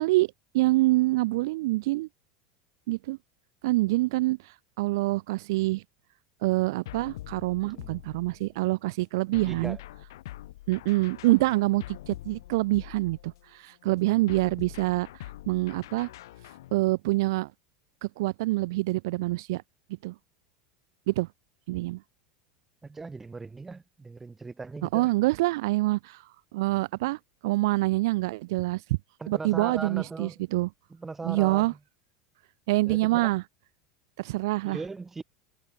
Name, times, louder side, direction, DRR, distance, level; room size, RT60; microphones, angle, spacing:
voice 1, 0.0-2.1 2.9-3.2 3.6-5.8 6.4-9.8 10.7-16.1 16.7-17.5 18.0-19.6 20.0-20.1 21.1-21.3 21.7-22.0 24.9-28.8 29.3-30.7 31.2-31.7 32.7-33.4 34.2-34.8, right 20 dB, 75° right, 0.3 m, -26 dB
sound 1, 6.9-8.6 9.3-13.5 14.3-16.8, left 15 dB, 90° left, 2.1 m, -44 dB
voice 2, 7.6-8.0 9.3-9.8 13.8-14.2 22.8-25.1 29.2-30.4 30.9-31.8 32.9-33.3 34.6-35.2, right 4 dB, 10° right, 2.3 m, -39 dB
supercardioid pair, 140°, 2 cm